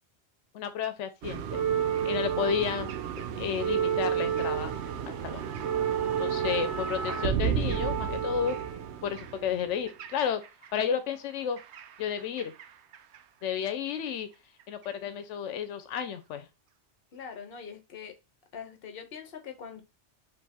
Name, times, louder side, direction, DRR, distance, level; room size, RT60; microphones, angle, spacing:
voice 1, 0.5-1.6 2.0-2.9 3.4-4.7 5.1-5.4 6.2-8.6 9.0-10.4 10.7-11.6 12.0-12.5 13.4-14.3 14.7-16.5, left 8 dB, 90° left, 0.9 m, -32 dB
sound 1, 1.2-10.7 11.6-12.7 12.9-13.2 14.1-14.2, right 8 dB, 70° right, 0.8 m, -30 dB
voice 2, 17.1-18.1 18.5-19.8, left 7 dB, 55° left, 1.1 m, -43 dB
4.6 x 2.8 x 4.1 m
omnidirectional pair, 1.2 m